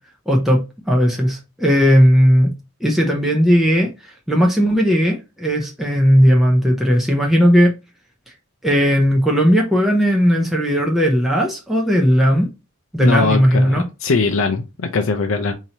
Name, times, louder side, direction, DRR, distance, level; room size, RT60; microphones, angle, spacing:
voice 1, 0.3-2.5 2.8-7.7 8.6-12.5 12.9-13.8, equal, ahead, 0.6 m, -16 dB
voice 2, 13.0-15.5, left 4 dB, 70° left, 0.5 m, -20 dB
4.6 x 2.8 x 2.8 m
head